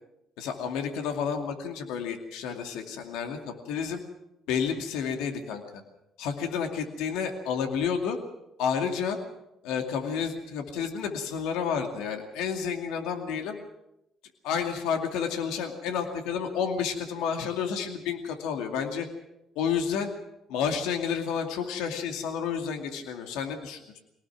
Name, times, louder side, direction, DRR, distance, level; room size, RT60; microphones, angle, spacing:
voice 1, 0.4-3.4 3.7-4.0 4.5-5.6 6.2-8.2 8.6-9.2 9.6-13.6 14.4-19.1 19.6-20.1 20.5-24.0, left 7 dB, 80° left, 4 dB, 2.4 m, -30 dB
23.5 x 18.5 x 6.1 m, 0.86 s
hypercardioid pair, 60°, 0 cm